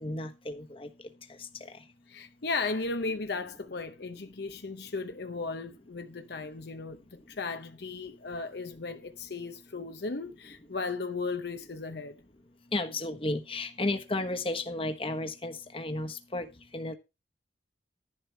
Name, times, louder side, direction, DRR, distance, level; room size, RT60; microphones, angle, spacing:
voice 1, 0.0-0.9 12.7-16.5 16.7-16.9, left 2 dB, 30° left, 1.2 m, -33 dB
voice 2, 2.1-12.2, left 3 dB, 60° left, 0.8 m, -36 dB
11.5 x 11.0 x 3.4 m
head